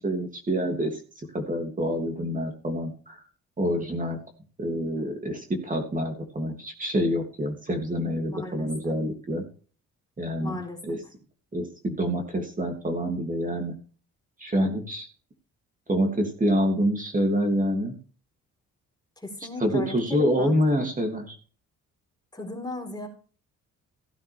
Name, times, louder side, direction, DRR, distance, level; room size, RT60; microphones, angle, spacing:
voice 1, 0.0-3.2 3.6-4.2 4.6-9.4 10.2-10.6 10.8-11.0 11.5-13.8 14.4-15.1 15.9-17.9 19.6-21.4, equal, 25° right, 3 dB, 3.0 m, -27 dB
voice 2, 8.3-9.0 10.4-11.0 19.2-20.8 22.3-23.1, left 2 dB, 15° left, 3 dB, 4.5 m, -37 dB
16.0 x 9.3 x 3.6 m, 0.39 s
cardioid pair, 90°, 30 cm